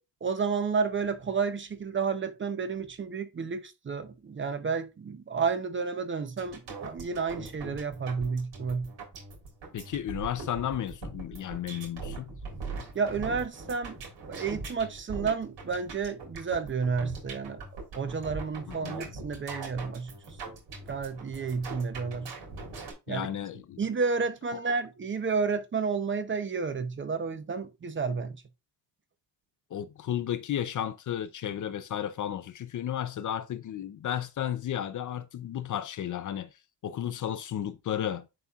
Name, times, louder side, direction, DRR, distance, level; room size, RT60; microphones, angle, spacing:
voice 1, 0.2-8.9 12.9-14.0 14.3-17.6 17.9-20.1 20.9-22.3 23.1-23.3 23.8-28.4, right 5 dB, 30° right, 0.7 m, -31 dB
sound 1, 6.4-22.9, right 3 dB, 85° right, 3.6 m, -41 dB
voice 2, 9.7-12.3 18.7-19.0 23.1-23.8 24.5-24.6 29.7-36.5 36.8-38.3, left 10 dB, 45° left, 0.5 m, -33 dB
11.0 x 4.2 x 2.4 m
cardioid pair, 160°, 42 cm